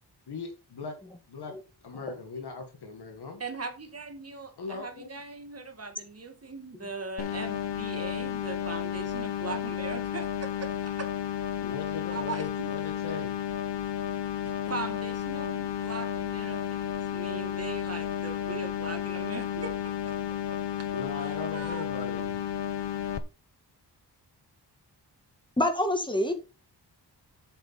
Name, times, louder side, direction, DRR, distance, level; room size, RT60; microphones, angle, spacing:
voice 1, 0.3-1.0 1.3-1.6 1.8-3.4 4.6-5.1 11.6-13.4 20.9-22.4, left 4 dB, 65° left, 1.8 m, -39 dB
voice 2, 3.4-11.1 12.1-12.7 14.4-20.2 20.5-20.9 21.5-22.0, right 3 dB, 35° right, 1.7 m, -40 dB
sound 1, 7.2-23.2, left 9 dB, 85° left, 1.0 m, -32 dB
voice 3, 25.6-26.3, left 1 dB, 10° left, 1.7 m, -26 dB
8.0 x 7.3 x 4.1 m
wide cardioid pair, 150°, 41 cm